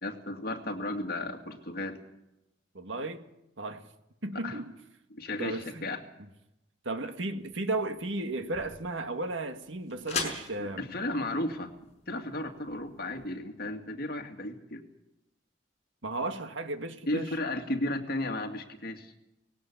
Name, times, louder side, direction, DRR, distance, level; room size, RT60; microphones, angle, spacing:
voice 1, 0.0-2.0 4.3-4.6 5.1-6.0 10.6-11.7 12.1-14.8 17.1-19.1, left 1 dB, 50° left, 2.3 m, -34 dB
voice 2, 2.7-3.2 3.6-3.8 4.2-4.7 5.4-5.9 6.9-10.9 16.0-17.3, right 2 dB, 80° right, 1.8 m, -34 dB
sound 1, 7.4-13.3, left 5 dB, 35° left, 5.4 m, -42 dB
19.0 x 17.5 x 8.4 m
head